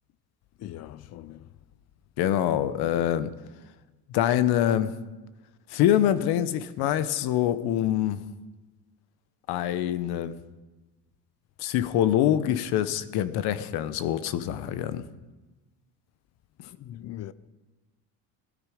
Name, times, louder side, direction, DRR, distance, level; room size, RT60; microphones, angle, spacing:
voice 1, 0.6-1.5 16.7-17.3, left 13 dB, 40° left, 0.5 m, -41 dB
voice 2, 2.2-3.3 4.1-4.9 5.7-8.2 9.5-10.4 11.6-15.0, left 11 dB, 65° left, 1.0 m, -25 dB
18.5 x 12.5 x 5.0 m
cardioid pair, 155°, 41 cm